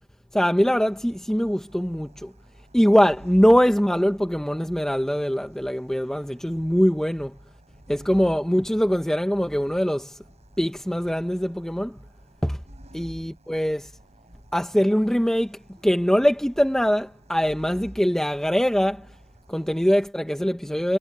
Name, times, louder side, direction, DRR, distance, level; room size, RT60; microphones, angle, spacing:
voice 1, 0.3-2.3 2.7-7.4 7.9-10.2 10.6-12.0 12.4-12.6 12.9-13.9 14.5-19.1 19.5-21.0, equal, ahead, 0.8 m, -22 dB
sound 1, 0.9-20.1, equal, 30° right, 6.3 m, -51 dB
head